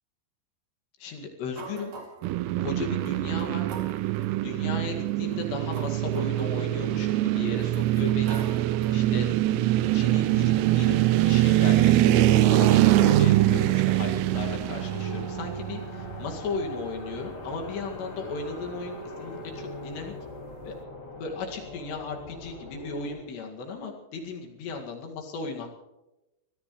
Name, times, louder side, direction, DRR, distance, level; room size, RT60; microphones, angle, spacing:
voice 1, 1.0-1.9 2.6-3.7 4.4-8.4 8.9-9.3 9.9-11.0 11.2-20.1 20.6-20.8 21.2-25.7, left 4 dB, 60° left, 2 dB, 4.0 m, -36 dB
sound 1, 1.5-2.4 3.0-3.1 3.4-4.3 5.1-7.0 7.6-9.1, right 4 dB, 40° right, 3.1 m, -44 dB
sound 2, 2.2-16.4, right 15 dB, 85° right, 3.3 m, -23 dB
sound 3, 6.6-23.2, left 1 dB, 35° left, 5.0 m, -41 dB
24.5 x 17.5 x 3.2 m, 0.96 s
omnidirectional pair, 5.9 m